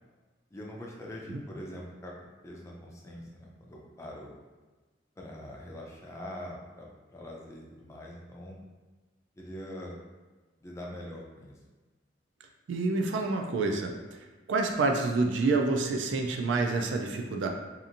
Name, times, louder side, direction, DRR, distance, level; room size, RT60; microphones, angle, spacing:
voice 1, 0.5-4.3 5.2-8.6 9.4-10.0 10.6-11.5, left 1 dB, 15° left, -3 dB, 0.4 m, -43 dB
voice 2, 12.7-13.9 14.5-17.5, right 3 dB, 80° right, 3 dB, 0.4 m, -28 dB
2.8 x 2.5 x 2.5 m, 1.3 s
head